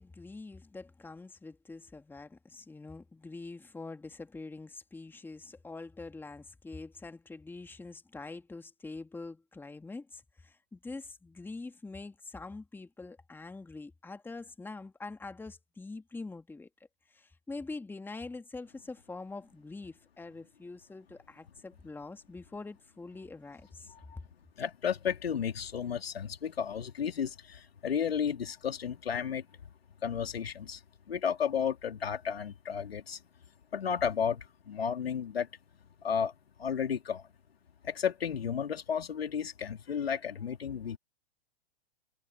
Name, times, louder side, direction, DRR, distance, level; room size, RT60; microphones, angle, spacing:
voice 1, 0.0-16.7 17.1-23.9, left 3 dB, 5° left, 2.1 m, -44 dB
voice 2, 24.6-29.5 30.0-30.8 31.1-33.2 33.7-35.5 36.0-36.3 36.6-37.3 37.8-41.0, left 7 dB, 75° left, 2.9 m, -33 dB
hypercardioid pair, 110°, 30 cm